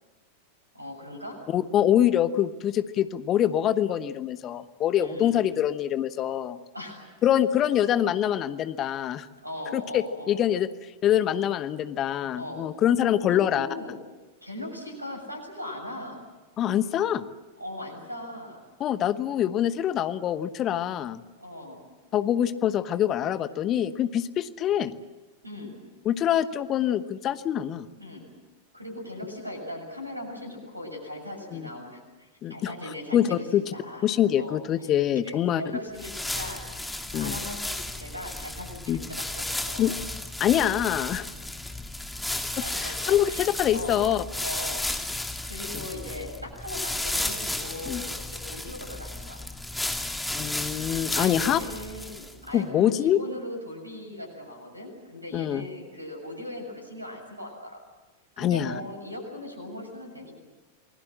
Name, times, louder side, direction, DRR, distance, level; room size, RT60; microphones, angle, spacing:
voice 1, 0.7-1.4 5.0-5.5 6.7-7.1 9.4-10.4 12.3-12.7 13.2-14.0 14.4-16.2 17.6-18.6 21.4-21.8 25.4-25.8 27.9-28.2 28.7-34.0 34.4-35.0 35.2-40.0 42.6-44.9 45.4-49.5 51.1-57.8 58.4-60.4, left 1 dB, 85° right, 4 dB, 7.1 m, -39 dB
voice 2, 1.5-6.6 7.2-9.3 9.7-10.7 11.0-13.7 16.6-17.3 18.8-21.2 22.1-24.9 26.0-27.9 31.5-31.7 32.4-32.7 33.1-33.6 34.0-35.6 37.1-37.4 38.9-39.0 39.8-39.9 40.4-41.3 42.8-44.2 47.9-48.0 50.3-51.6 52.5-53.2 55.3-55.6 58.4-58.7, left 10 dB, 30° left, 14 dB, 1.1 m, -25 dB
sound 1, 35.9-52.5, left 1 dB, 5° left, 2.2 m, -33 dB
28.0 x 21.0 x 7.6 m, 1.2 s
figure-of-eight pair, 90°, 0 cm